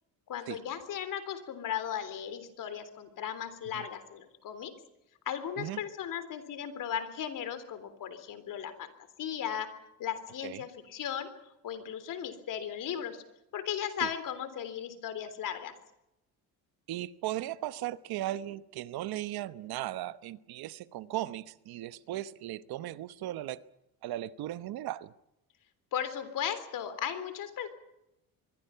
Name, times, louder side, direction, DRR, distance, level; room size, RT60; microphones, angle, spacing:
voice 1, 0.3-4.7 5.3-8.9 9.2-9.7 10.0-11.3 11.6-13.2 13.5-15.7 25.9-27.8, left 9 dB, 60° left, 11 dB, 3.7 m, -36 dB
voice 2, 16.9-23.6 24.0-25.1, right 14 dB, 80° right, 15 dB, 1.1 m, -37 dB
25.0 x 23.0 x 5.8 m, 0.87 s
cardioid pair, 160°, 37 cm